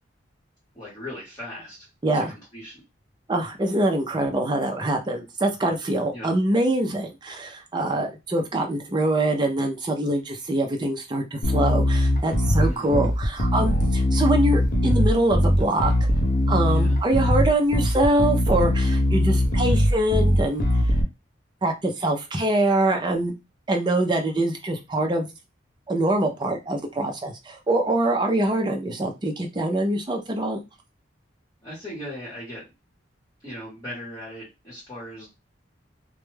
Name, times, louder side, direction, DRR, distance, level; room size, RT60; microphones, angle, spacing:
voice 1, 0.7-1.9 2.1-2.8 6.1-6.4 12.6-13.0 16.6-17.0 31.6-32.7 33.4-35.3, left 1 dB, 20° left, -7 dB, 1.0 m, -38 dB
voice 2, 2.0-2.3 3.3-15.9 16.5-20.6 21.6-23.3 23.7-25.3 25.9-30.6, right 1 dB, 25° right, 4 dB, 0.4 m, -24 dB
Bass guitar, 11.4-21.0, left 1 dB, 45° left, 0.5 m, -21 dB
2.2 x 2.1 x 3.1 m, 0.25 s
head